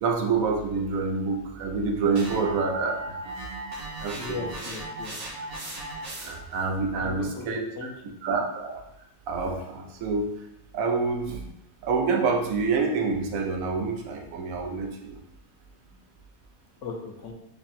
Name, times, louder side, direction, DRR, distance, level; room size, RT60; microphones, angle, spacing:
voice 1, 0.0-3.2 4.0-4.5 6.2-7.9 8.2-8.8 9.3-10.3 10.7-11.4 11.8-15.2, right 4 dB, 85° right, 2 dB, 1.1 m, -27 dB
sound 1, 2.2-6.6, right 1 dB, 60° right, 1.2 m, -37 dB
voice 2, 4.1-5.2 6.9-7.9 16.8-17.3, left 4 dB, 70° left, 1 dB, 1.0 m, -37 dB
3.3 x 2.5 x 4.1 m, 0.84 s
omnidirectional pair, 1.4 m